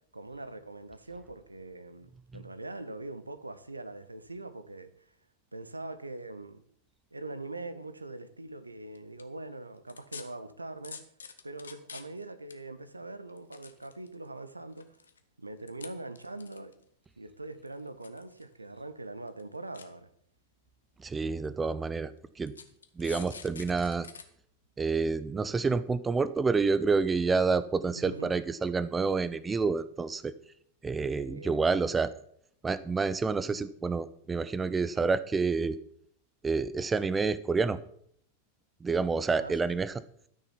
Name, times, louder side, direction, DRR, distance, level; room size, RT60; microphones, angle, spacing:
voice 1, 0.1-5.1 5.5-6.6 7.1-11.0 11.4-15.0 15.4-16.8 17.2-20.1 27.8-28.4 31.2-31.6 34.9-35.1 39.3-39.5, right 2 dB, 80° right, 0.8 m, -42 dB
sound 1, 8.9-9.2 9.9-10.2 10.8-12.2 12.5-12.6 13.3-14.3 14.7-15.2 15.7-15.9 16.2-16.8 17.7-18.5 18.8-18.9 19.3-19.4 19.7-19.8 20.7-20.8 21.4-21.5 22.5-24.2 24.6-24.7, left 6 dB, 70° left, 1.0 m, -45 dB
voice 2, 21.0-22.1 22.4-22.5 23.0-24.1 24.8-30.3 30.8-32.1 32.6-35.8 36.4-37.8 38.8-39.9, right 4 dB, 15° right, 0.5 m, -28 dB
12.5 x 6.5 x 5.7 m
figure-of-eight pair, 90°, 0 cm